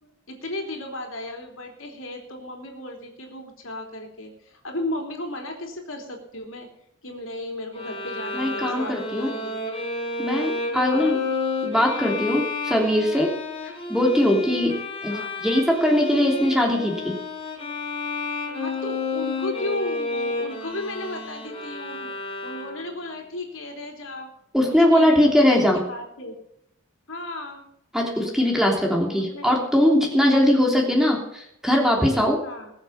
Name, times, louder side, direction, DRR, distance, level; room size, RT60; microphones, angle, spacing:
voice 1, 0.0-6.7 7.0-9.6 10.8-11.2 15.1-15.3 18.5-22.1 22.4-24.3 24.8-26.3 27.1-27.7 29.1-29.5 32.4-32.7, left 1 dB, 70° left, 2 dB, 3.3 m, -35 dB
Bowed string instrument, 7.7-23.0, left 3 dB, 30° left, 3.8 m, -31 dB
voice 2, 8.3-9.3 10.2-11.2 11.6-13.3 13.9-14.7 15.0-17.2 24.5-25.8 27.9-32.4, left 1 dB, ahead, 0 dB, 3.2 m, -20 dB
21.0 x 7.3 x 5.8 m, 0.77 s
head